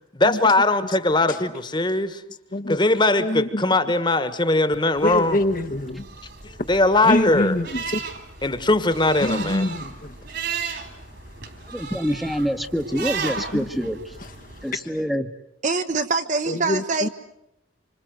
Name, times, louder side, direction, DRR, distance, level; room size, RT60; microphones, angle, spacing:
voice 1, 0.1-2.2 2.7-5.4 6.4-7.5 8.4-9.7, left 2 dB, 25° left, 1.6 m, -20 dB
voice 2, 2.5-2.8 3.2-3.6 5.0-6.1 6.6-6.7 7.0-8.0 9.2-10.2 13.4-13.7 14.2-15.0 16.5-17.1, left 1 dB, 45° left, 1.2 m, -26 dB
sound 1, 4.9-14.7, right 5 dB, 55° right, 3.2 m, -35 dB
voice 3, 11.7-14.0 14.6-15.3, equal, ahead, 1.2 m, -26 dB
voice 4, 15.6-17.1, right 4 dB, 40° right, 1.2 m, -24 dB
27.0 x 26.0 x 7.9 m
head